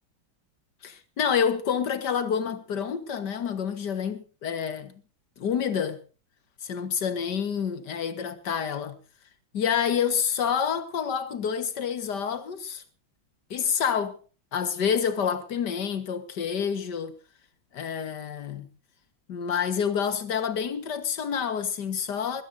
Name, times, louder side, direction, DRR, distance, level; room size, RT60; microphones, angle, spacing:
voice 1, 0.8-4.9 5.4-6.0 6.6-9.0 9.5-12.8 13.5-14.2 14.5-17.1 17.7-18.7 19.3-22.4, left 7 dB, 55° left, 2.1 m, -28 dB
20.0 x 17.5 x 2.7 m
omnidirectional pair, 2.2 m